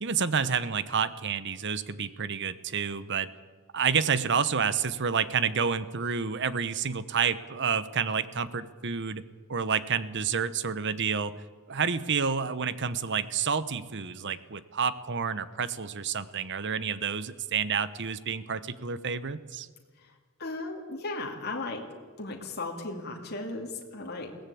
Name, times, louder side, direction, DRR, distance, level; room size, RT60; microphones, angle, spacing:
voice 1, 0.0-3.3 3.7-9.2 9.5-11.3 11.7-19.7, right 6 dB, 55° right, 15 dB, 0.9 m, -29 dB
voice 2, 20.4-21.9 22.2-24.4, left 2 dB, 45° left, 1 dB, 2.7 m, -36 dB
21.5 x 17.0 x 8.5 m, 1.5 s
head